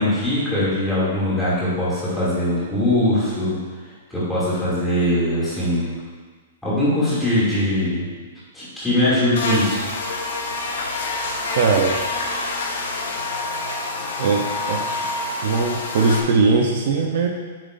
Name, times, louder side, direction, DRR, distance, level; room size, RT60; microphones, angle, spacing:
voice 1, 0.0-3.6 4.1-5.9 6.6-8.1 8.5-9.8, left 1 dB, 5° left, -11 dB, 2.4 m, -21 dB
Buzz, 9.4-16.2, left 3 dB, 70° left, 1.3 m, -27 dB
voice 2, 11.6-12.0 14.2-14.8 15.4-17.3, right 4 dB, 45° right, 2 dB, 0.6 m, -20 dB
9.0 x 7.3 x 2.5 m, 1.5 s
hypercardioid pair, 175°, 0 cm